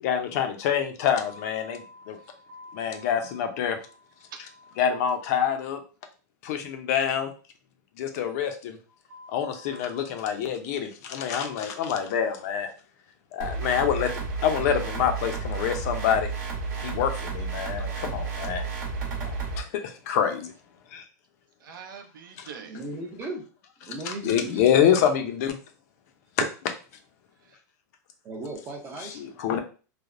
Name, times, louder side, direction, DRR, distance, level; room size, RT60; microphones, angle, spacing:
voice 1, 0.0-2.2 2.7-3.8 4.8-5.8 6.4-7.3 8.0-8.8 9.3-12.7 13.3-16.3 16.8-18.7 19.2-20.5 20.9-21.0 22.4-22.5 23.8-25.6 29.0-29.6, left 8 dB, 50° left, 7 dB, 0.5 m, -26 dB
voice 2, 1.6-3.1 4.5-4.7 9.1-9.9 14.6-14.8 21.6-22.8, right 3 dB, 80° right, 5 dB, 0.6 m, -46 dB
sound 1, 13.4-19.6, right 4 dB, 65° right, 1.0 m, -32 dB
voice 3, 22.6-23.4 23.8-24.7 28.2-29.2, right 2 dB, 20° right, 1 dB, 0.5 m, -36 dB
3.2 x 2.0 x 2.4 m, 0.36 s
supercardioid pair, 155°, 11 cm